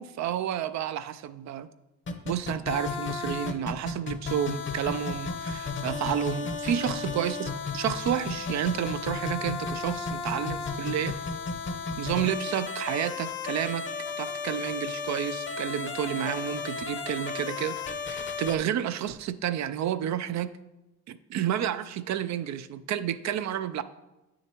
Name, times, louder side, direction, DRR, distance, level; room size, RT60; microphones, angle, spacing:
voice 1, 0.0-1.7 2.3-11.1 12.0-13.8 14.2-17.8 18.1-20.5 21.1-23.8, right 10 dB, 65° right, 12 dB, 0.5 m, -30 dB
sound 1, 2.1-18.6, left 4 dB, 40° left, 0.8 m, -33 dB
8.3 x 6.4 x 3.0 m, 1.0 s
cardioid pair, 90°, 30 cm